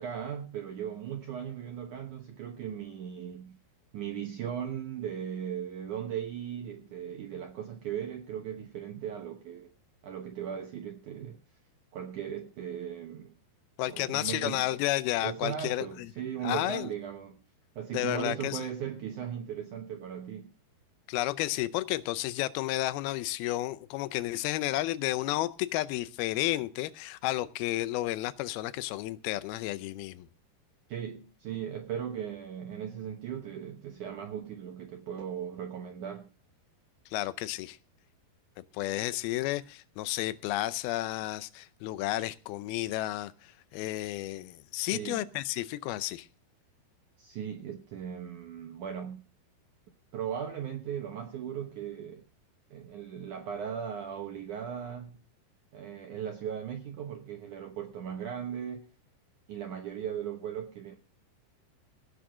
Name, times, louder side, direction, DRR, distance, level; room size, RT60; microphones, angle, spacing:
voice 1, 0.0-3.6 3.9-9.7 10.0-11.4 11.9-13.3 13.9-14.8 15.2-17.4 17.8-20.5 30.9-36.3 44.8-45.3 47.2-49.2 50.1-52.2 52.7-55.2 55.7-58.9 59.5-61.0, right 9 dB, 70° right, 1.9 m, -38 dB
voice 2, 13.8-15.9 16.4-16.9 17.9-18.6 21.1-30.3 37.1-37.8 38.7-43.3 43.7-46.3, left 16 dB, 80° left, 2.3 m, -32 dB
17.5 x 6.5 x 6.2 m
omnidirectional pair, 5.1 m